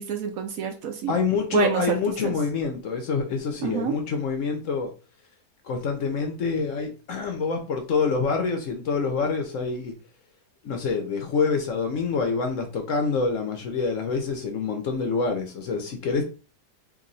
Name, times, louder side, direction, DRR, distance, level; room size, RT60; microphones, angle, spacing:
voice 1, 0.0-1.1 1.5-2.0 2.2-2.3 3.6-4.0, right 7 dB, 70° right, 5 dB, 0.9 m, -27 dB
voice 2, 1.1-4.9 5.6-9.9 10.6-16.2, left 4 dB, 65° left, 4 dB, 0.9 m, -26 dB
3.0 x 2.6 x 3.9 m, 0.35 s
omnidirectional pair, 1.7 m